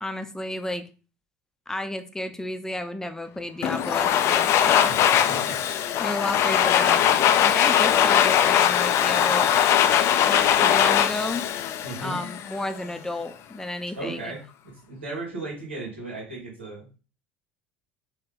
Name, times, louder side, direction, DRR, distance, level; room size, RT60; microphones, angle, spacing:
voice 1, 0.0-0.8 1.7-4.9 6.0-9.6 10.2-11.5 12.0-14.3, left 1 dB, 10° left, 9 dB, 0.7 m, -32 dB
Domestic sounds home sounds, 3.6-12.5, left 10 dB, 50° left, 0.5 m, -21 dB
voice 2, 5.3-5.6 11.8-12.2 14.0-17.0, right 2 dB, 85° right, -5 dB, 2.4 m, -36 dB
4.3 x 3.2 x 3.6 m, 0.34 s
hypercardioid pair, 70°, 6 cm